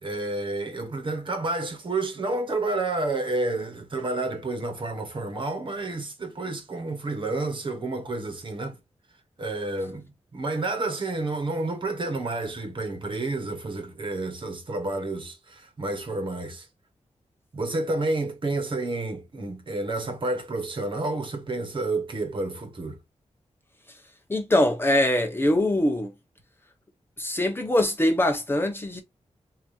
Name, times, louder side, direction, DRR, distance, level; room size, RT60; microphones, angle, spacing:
voice 1, 0.0-8.8 9.4-16.7 17.5-23.0, right 2 dB, 45° right, 1.3 m, -30 dB
voice 2, 24.3-26.1 27.2-29.0, left 1 dB, 20° left, 0.9 m, -23 dB
5.1 x 2.8 x 2.5 m
wide cardioid pair, 160°, 12 cm